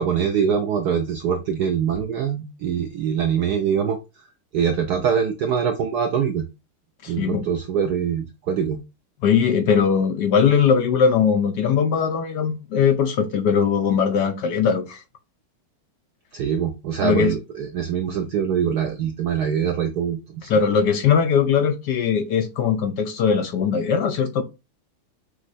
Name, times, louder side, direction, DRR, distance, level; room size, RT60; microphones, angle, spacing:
voice 1, 0.0-4.0 4.5-6.5 7.1-8.8 16.3-20.5, right 7 dB, 80° right, 0.8 m, -23 dB
voice 2, 7.0-7.4 9.2-15.0 17.0-17.3 20.5-24.4, left 6 dB, 75° left, 0.9 m, -20 dB
6.3 x 3.1 x 2.5 m
omnidirectional pair, 2.3 m